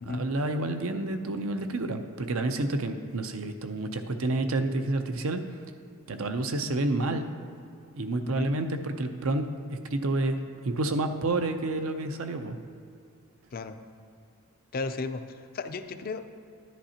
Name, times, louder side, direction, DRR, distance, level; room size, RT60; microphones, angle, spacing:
voice 1, 0.0-5.4 6.1-7.3 7.9-12.6, right 2 dB, 65° right, 7 dB, 0.6 m, -29 dB
voice 2, 14.7-16.2, left 3 dB, 45° left, 9 dB, 0.4 m, -34 dB
11.5 x 10.5 x 2.9 m, 2.5 s
head